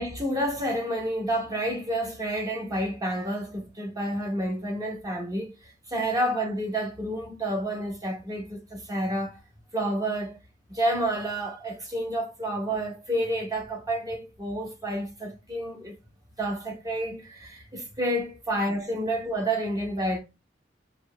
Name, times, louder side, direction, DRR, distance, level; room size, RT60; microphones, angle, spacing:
voice 1, 0.0-5.5 5.9-9.4 9.7-10.4 10.7-15.9 16.4-20.2, right 1 dB, 20° right, 0.9 m, -29 dB
6.8 x 2.8 x 2.2 m
head